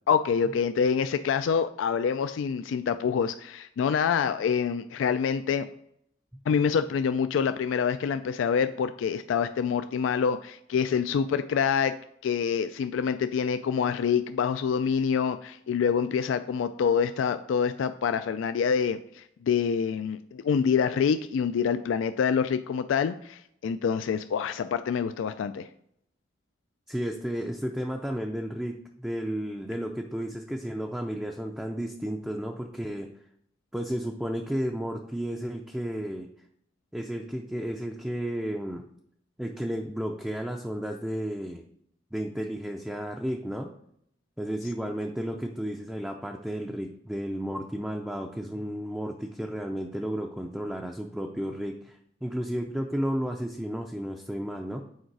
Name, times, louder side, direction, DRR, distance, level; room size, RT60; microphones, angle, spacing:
voice 1, 0.1-5.7 6.5-11.9 12.2-25.7, left 6 dB, 85° left, 11 dB, 0.3 m, -26 dB
voice 2, 26.9-33.1 33.7-36.3 36.9-38.8 39.4-41.6 42.1-43.7 44.4-54.8, equal, 5° right, 2 dB, 0.4 m, -33 dB
6.5 x 4.7 x 4.7 m, 0.71 s
head